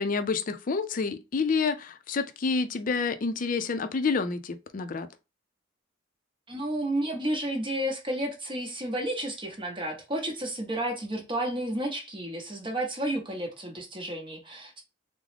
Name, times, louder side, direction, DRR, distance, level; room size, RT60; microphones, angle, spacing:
voice 1, 0.0-5.1, left 4 dB, 45° left, 0.4 m, -28 dB
voice 2, 6.5-14.8, right 1 dB, 25° right, 0.8 m, -31 dB
3.6 x 2.0 x 3.2 m
head